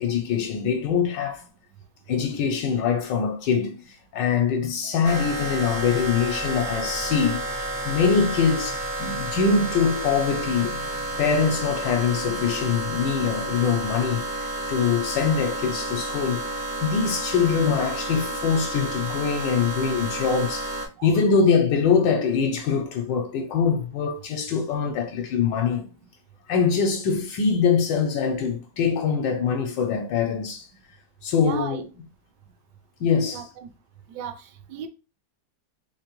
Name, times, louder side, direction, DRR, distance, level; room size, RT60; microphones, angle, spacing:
voice 1, 0.0-1.4 2.1-3.8 4.1-7.6 7.8-10.8 11.2-20.7 21.0-25.8 26.5-30.7 31.2-31.9 33.0-33.4, left 6 dB, 80° left, 1.3 m, -23 dB
sound 1, 5.0-20.9, right 2 dB, 45° right, 0.6 m, -31 dB
voice 2, 21.0-21.4 31.4-31.8 33.3-33.7 34.1-34.9, right 8 dB, 70° right, 1.1 m, -37 dB
3.6 x 3.2 x 3.0 m
omnidirectional pair, 2.0 m